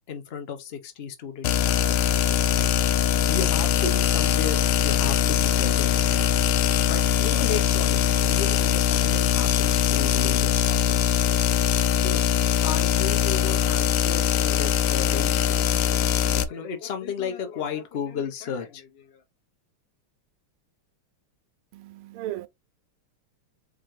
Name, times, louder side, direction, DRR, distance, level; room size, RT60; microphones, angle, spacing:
voice 1, 0.1-2.7 3.3-6.3 6.9-11.4 12.0-12.3 12.6-15.7 16.3-19.2, left 7 dB, 45° left, 0.8 m, -34 dB
sound 1, 1.4-16.4, left 9 dB, 85° left, 1.5 m, -22 dB
voice 2, 21.7-22.5, right 14 dB, 80° right, 1.5 m, -35 dB
4.3 x 3.8 x 3.2 m
omnidirectional pair, 2.4 m